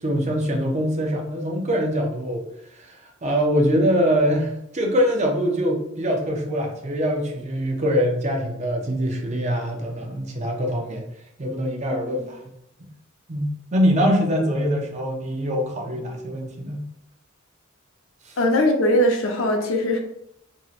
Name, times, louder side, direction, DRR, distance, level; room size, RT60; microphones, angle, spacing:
voice 1, 0.0-2.4 2.7-11.0 11.4-12.4 13.3-16.8 18.3-18.4, equal, 35° right, 1 dB, 0.5 m, -23 dB
voice 2, 18.4-20.0, left 1 dB, 75° left, 3 dB, 0.6 m, -20 dB
2.9 x 2.7 x 2.4 m, 0.79 s
head